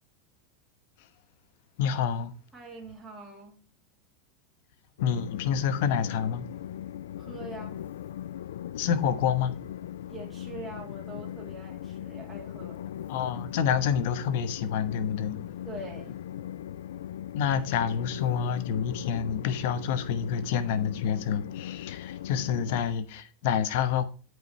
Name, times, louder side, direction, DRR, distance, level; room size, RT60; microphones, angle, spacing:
voice 1, 1.8-2.3 5.0-6.5 8.8-9.6 13.1-15.5 17.3-24.0, left 8 dB, 65° left, 1.0 m, -28 dB
voice 2, 2.5-3.6 7.2-7.8 10.1-12.8 15.6-16.2, right 2 dB, 10° right, 2.4 m, -43 dB
Train, 5.0-22.8, left 11 dB, 90° left, 0.3 m, -39 dB
8.1 x 4.9 x 4.2 m
supercardioid pair, 135°, 0 cm